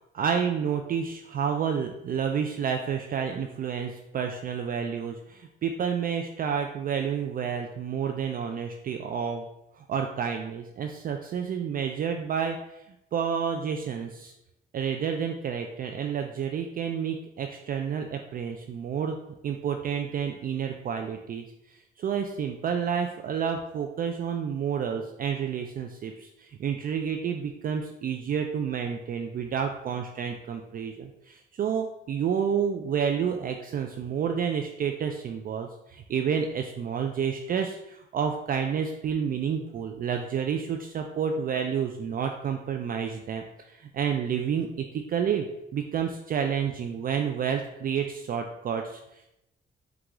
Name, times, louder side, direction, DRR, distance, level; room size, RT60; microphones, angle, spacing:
voice 1, 0.1-9.5 9.9-12.6 13.1-14.3 14.7-19.2 19.4-21.4 22.0-43.4 43.9-45.5 45.7-49.0, right 7 dB, 45° right, 4 dB, 0.4 m, -29 dB
4.8 x 2.4 x 3.5 m, 0.85 s
cardioid pair, 90°, 20 cm